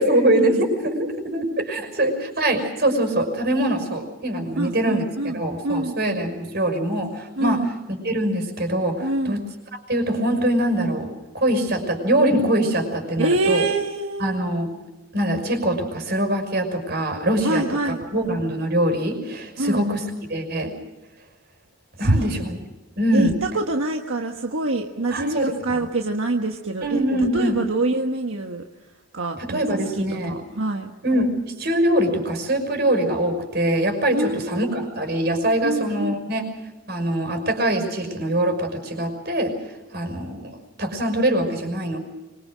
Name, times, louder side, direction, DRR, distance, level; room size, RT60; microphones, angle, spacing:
voice 1, 0.0-5.0 5.3-7.6 7.9-9.4 9.9-11.1 11.3-13.7 14.2-14.7 15.1-20.0 20.3-20.7 22.0-22.6 23.0-23.4 25.1-25.5 26.8-27.6 29.4-30.4 31.0-36.5 36.9-39.5 39.9-42.0, right 1 dB, 50° right, 6 dB, 5.9 m, -23 dB
voice 2, 4.6-5.9 7.4-7.7 9.0-9.4 13.2-14.4 17.4-18.3 19.6-19.9 22.0-22.3 23.1-27.0 27.3-28.6 29.1-30.9 34.1-34.9 35.6-36.1, right 2 dB, 80° right, 3 dB, 1.4 m, -25 dB
25.0 x 23.5 x 6.4 m, 1.1 s
head